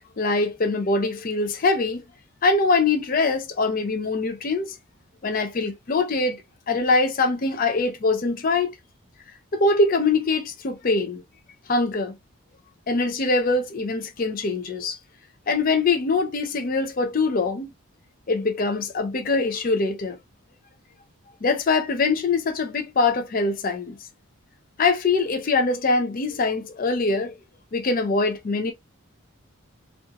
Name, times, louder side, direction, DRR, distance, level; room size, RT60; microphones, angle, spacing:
voice 1, 0.2-2.0 2.4-4.8 5.2-6.4 6.7-8.7 9.5-11.2 11.7-12.1 12.9-15.0 15.5-17.7 18.3-20.2 21.4-24.0 24.8-27.3 27.7-28.7, left 3 dB, 40° left, 0.4 m, -23 dB
2.3 x 2.2 x 2.8 m
head